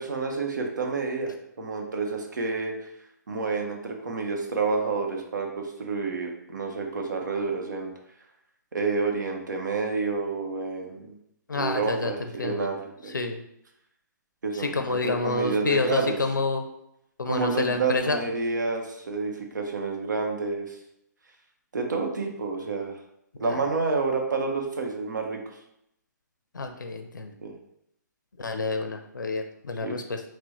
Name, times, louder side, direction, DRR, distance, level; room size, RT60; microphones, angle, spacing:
voice 1, 0.0-2.7 3.3-7.9 8.7-11.2 11.5-13.2 14.4-16.2 17.3-20.8 21.7-22.9 23.4-25.4 27.4-27.5 29.8-30.0, right 4 dB, 70° right, 2 dB, 0.8 m, -29 dB
voice 2, 11.5-12.1 12.4-12.7 13.1-13.4 14.5-16.6 17.2-18.2 23.4-23.6 26.5-27.3 28.4-30.2, left 3 dB, 85° left, 6 dB, 0.5 m, -28 dB
6.0 x 2.1 x 3.0 m, 0.78 s
figure-of-eight pair, 130°, 10 cm